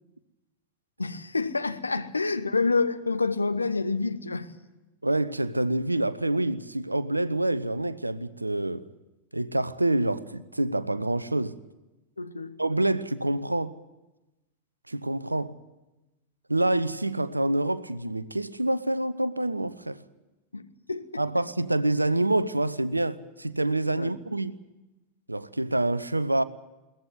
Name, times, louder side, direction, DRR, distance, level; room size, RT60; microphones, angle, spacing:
voice 1, 1.0-4.5 12.2-12.6 20.5-21.2 24.0-24.1, left 3 dB, 80° left, 1.1 m, -28 dB
voice 2, 5.0-8.9 9.3-11.6 12.6-13.8 14.9-15.5 16.5-20.0 21.2-24.6 25.3-26.4, right 1 dB, 85° right, 0.8 m, -27 dB
22.0 x 18.5 x 9.5 m
figure-of-eight pair, 90°, 0 cm